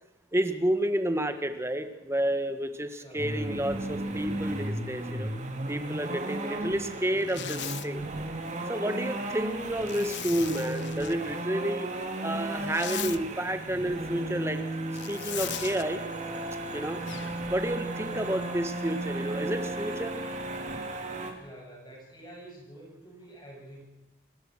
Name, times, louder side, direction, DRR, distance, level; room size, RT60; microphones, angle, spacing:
voice 1, 0.3-5.3 5.7-8.0 8.7-11.9 12.2-14.6 15.1-16.0 16.7-17.0 17.5-20.2, right 1 dB, 15° right, 8 dB, 1.6 m, -30 dB
voice 2, 3.0-3.5 18.0-18.5 21.4-23.8, right 1 dB, 25° left, -1 dB, 7.7 m, -48 dB
sound 1, 3.2-21.3, right 2 dB, 40° right, 2.8 m, -35 dB
Zipper (clothing), 7.2-7.9 9.9-11.2 12.5-13.2 14.9-15.8, left 12 dB, 65° left, 0.7 m, -38 dB
sound 2, 17.1-18.1, left 3 dB, 85° left, 2.2 m, -46 dB
27.5 x 18.5 x 6.3 m, 0.95 s
head